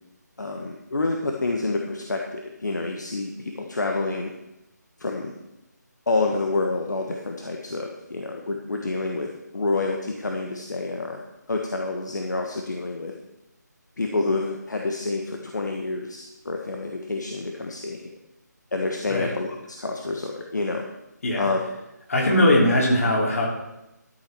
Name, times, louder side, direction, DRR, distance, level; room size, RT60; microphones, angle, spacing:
voice 1, 0.4-4.3 5.0-5.4 6.1-11.2 11.5-13.1 14.0-18.1 18.7-20.8 21.4-21.6 22.4-22.5, left 3 dB, 75° left, 2 dB, 1.4 m, -28 dB
voice 2, 22.1-23.5, left 1 dB, 50° left, -1 dB, 3.5 m, -20 dB
12.5 x 6.2 x 6.1 m, 0.93 s
figure-of-eight pair, 160°, 10 cm